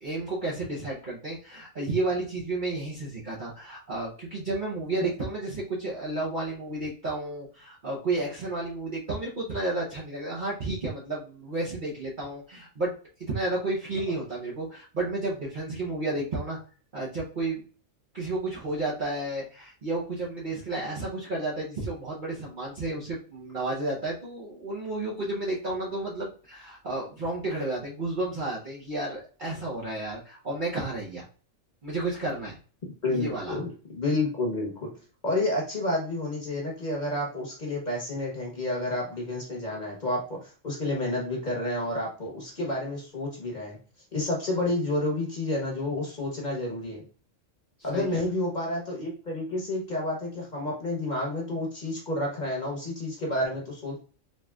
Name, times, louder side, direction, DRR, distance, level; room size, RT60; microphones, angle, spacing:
voice 1, 0.0-12.9 13.2-16.6 16.9-17.6 18.1-31.3 31.8-32.6 33.1-33.6 47.8-48.2, right 2 dB, 45° right, -5 dB, 0.9 m, -32 dB
voice 2, 33.0-34.9 35.2-43.8 44.1-47.0 47.8-54.0, left 1 dB, 35° left, -2 dB, 1.1 m, -30 dB
4.2 x 3.1 x 2.3 m, 0.38 s
omnidirectional pair, 1.4 m